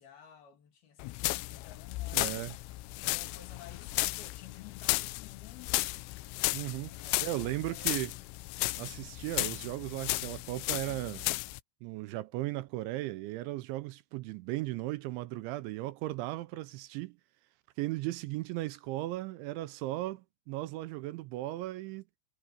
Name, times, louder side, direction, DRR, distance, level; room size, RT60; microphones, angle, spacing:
voice 1, 0.0-2.6 3.0-5.9 6.8-7.9, left 9 dB, 55° left, 4.0 m, -54 dB
sound 1, 1.0-11.6, left 21 dB, 85° left, 3.1 m, -34 dB
voice 2, 2.1-2.5 6.5-6.9 7.2-8.1 8.8-11.3 11.8-17.2 17.8-22.0, right 17 dB, 80° right, 3.0 m, -36 dB
omnidirectional pair, 5.6 m